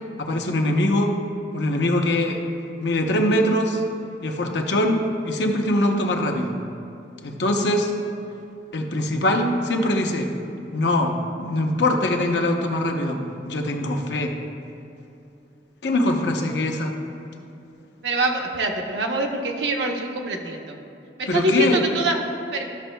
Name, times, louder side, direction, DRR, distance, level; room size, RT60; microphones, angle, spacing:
voice 1, 0.2-1.1 1.5-2.4 2.8-3.8 4.2-6.5 7.2-7.9 8.7-10.3 10.7-14.3 15.8-16.9 21.3-21.8, left 1 dB, 85° left, 3 dB, 0.8 m, -22 dB
voice 2, 18.0-20.8 21.2-22.2 22.5-22.6, right 1 dB, 85° right, 2 dB, 0.8 m, -24 dB
13.0 x 6.2 x 2.2 m, 2.7 s
head